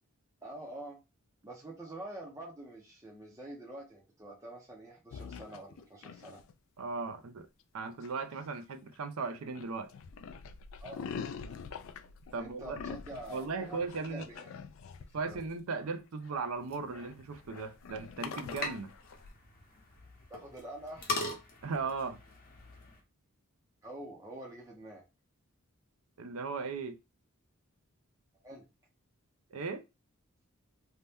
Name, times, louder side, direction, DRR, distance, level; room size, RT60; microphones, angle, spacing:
voice 1, 0.4-1.0 1.4-6.4 10.8-11.1 12.4-14.5 15.2-15.4 20.3-21.2 23.8-25.0 28.4-28.7, right 1 dB, 15° right, 0.6 m, -46 dB
sound 1, 5.1-6.5 8.0-8.9 9.3-19.3, left 6 dB, 65° left, 0.3 m, -45 dB
voice 2, 6.8-7.5 7.7-9.9 12.3-12.8 13.3-14.3 15.1-18.9 21.6-22.2 26.2-27.0 29.5-29.8, right 4 dB, 75° right, 0.5 m, -37 dB
sound 2, 16.6-23.0, left 2 dB, 40° left, 0.9 m, -42 dB
2.7 x 2.1 x 3.4 m
head